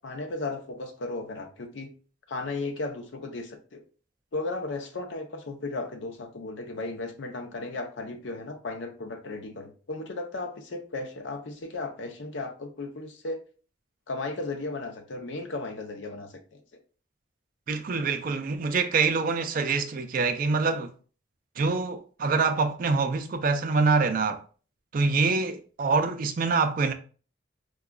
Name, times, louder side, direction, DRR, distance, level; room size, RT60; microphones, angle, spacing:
voice 1, 0.0-1.9 2.3-3.8 4.3-13.4 14.1-16.6, left 3 dB, 80° left, 0.6 m, -35 dB
voice 2, 17.7-20.9 21.6-24.4 24.9-26.9, right 4 dB, 50° right, 0.4 m, -25 dB
4.8 x 2.2 x 2.2 m
head